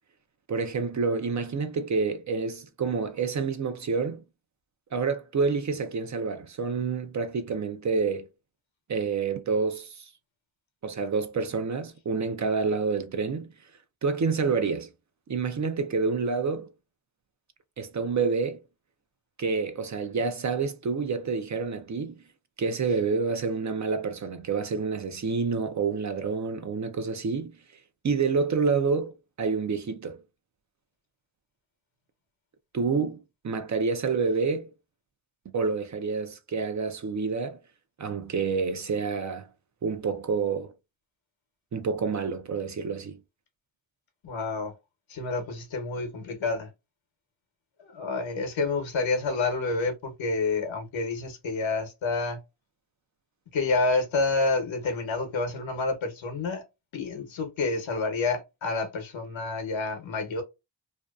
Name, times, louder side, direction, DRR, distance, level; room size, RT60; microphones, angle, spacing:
voice 1, 0.5-4.2 4.9-8.3 8.9-10.1 10.8-13.5 14.0-14.9 15.3-16.7 17.8-18.6 19.4-22.2 22.6-27.6 28.0-30.2 32.7-34.7 35.5-37.6 38.0-39.5 39.8-40.7 41.7-43.2, right 5 dB, 40° right, 0.5 m, -28 dB
voice 2, 44.2-44.7 45.1-46.7 47.9-52.4 53.5-56.6 56.9-60.4, left 3 dB, 75° left, 1.0 m, -28 dB
2.6 x 2.2 x 2.3 m
cardioid pair, 60°, 46 cm